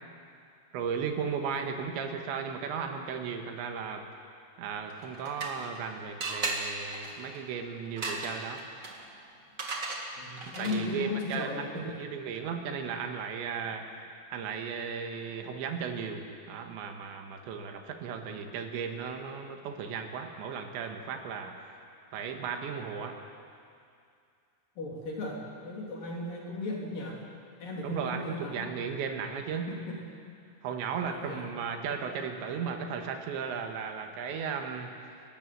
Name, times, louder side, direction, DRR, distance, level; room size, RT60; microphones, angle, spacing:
voice 1, 0.7-4.1 4.6-8.6 10.6-13.9 14.3-21.6 22.1-23.2 27.8-29.7 30.6-35.0, right 6 dB, 85° right, 4 dB, 3.8 m, -35 dB
voice 2, 1.5-1.9 10.2-12.0 24.8-27.2 27.6-28.7 29.7-30.0 31.1-31.5, left 2 dB, 50° left, -3 dB, 4.6 m, -36 dB
sound 1, 4.9-5.8 6.2-11.0, right 3 dB, 60° right, 0.8 m, -37 dB
30.0 x 13.0 x 7.8 m, 2.4 s
omnidirectional pair, 5.1 m